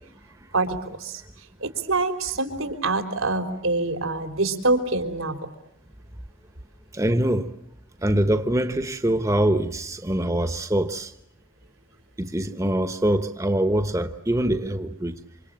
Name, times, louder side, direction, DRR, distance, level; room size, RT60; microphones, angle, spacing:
voice 1, 0.5-1.2 1.6-5.4, right 3 dB, 90° right, 3.8 m, -25 dB
voice 2, 6.9-7.5 8.0-11.1 12.2-15.2, right 1 dB, 15° right, 1.0 m, -24 dB
28.5 x 26.5 x 7.5 m
head